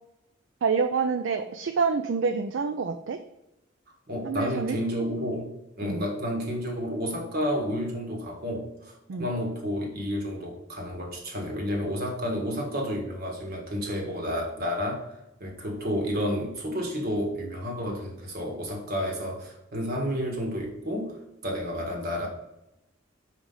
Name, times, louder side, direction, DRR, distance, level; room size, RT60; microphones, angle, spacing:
voice 1, 0.6-3.2 4.2-4.8 5.8-6.0 9.1-9.3, right 5 dB, 70° right, 8 dB, 0.4 m, -27 dB
voice 2, 4.1-22.3, equal, 55° right, 0 dB, 1.6 m, -31 dB
5.0 x 4.9 x 3.9 m, 0.90 s
head